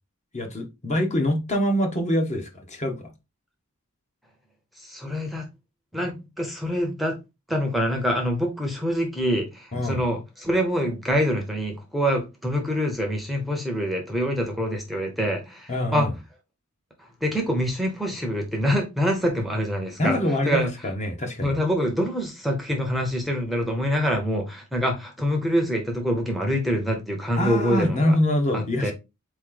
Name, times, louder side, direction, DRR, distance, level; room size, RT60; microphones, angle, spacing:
voice 1, 0.3-3.1 9.7-10.0 15.7-16.1 20.0-21.5 27.4-28.9, left 1 dB, 30° left, 1.0 m, -24 dB
voice 2, 4.8-5.5 5.9-7.2 7.5-16.1 17.0-20.7 21.4-28.2 28.5-28.9, equal, ahead, 0.8 m, -25 dB
4.2 x 3.1 x 3.7 m
head